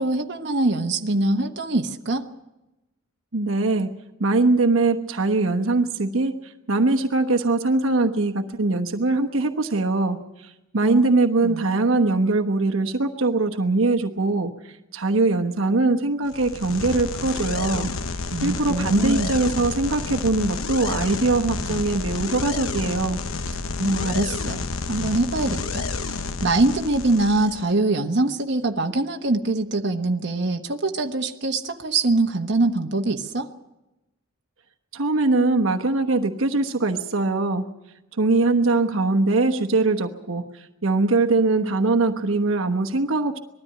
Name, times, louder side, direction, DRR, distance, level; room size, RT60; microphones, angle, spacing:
voice 1, 0.0-2.2 10.8-11.1 11.4-11.7 18.3-19.3 23.8-24.6 24.9-33.5, right 2 dB, 55° right, 4 dB, 1.2 m, -23 dB
voice 2, 3.3-3.9 4.2-17.9 18.4-23.2 34.9-37.7 38.2-43.4, right 3 dB, 75° right, 4 dB, 1.1 m, -22 dB
sound 1, 16.3-27.7, left 4 dB, 85° left, 1.0 m, -30 dB
20.5 x 13.5 x 10.0 m, 0.96 s
head